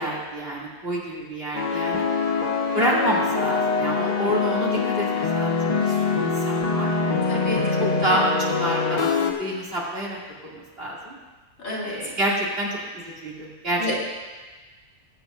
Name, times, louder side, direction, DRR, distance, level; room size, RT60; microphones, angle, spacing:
voice 1, 0.0-2.0 2.7-6.9 7.3-8.3 8.6-10.2 10.5-11.1 11.8-12.7 12.9-14.0, right 1 dB, 45° right, -6 dB, 2.9 m, -28 dB
sound 1, 1.5-9.3, left 4 dB, 35° left, 1.1 m, -24 dB
voice 2, 7.3-8.3 11.6-11.9 13.8-14.0, left 1 dB, 85° left, -5 dB, 3.4 m, -30 dB
20.0 x 8.3 x 2.6 m, 1.3 s
omnidirectional pair, 1.4 m